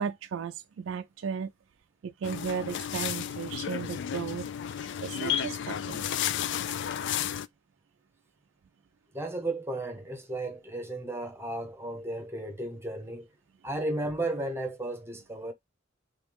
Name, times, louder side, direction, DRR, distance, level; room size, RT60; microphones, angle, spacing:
voice 1, 0.0-1.5 2.0-4.5 4.8-6.1, right 7 dB, 75° right, 0.3 m, -35 dB
sound 1, 2.2-7.5, left 9 dB, 60° left, 0.3 m, -32 dB
voice 2, 9.1-13.3 13.6-15.5, right 2 dB, 15° right, 0.7 m, -34 dB
3.2 x 3.1 x 3.4 m
head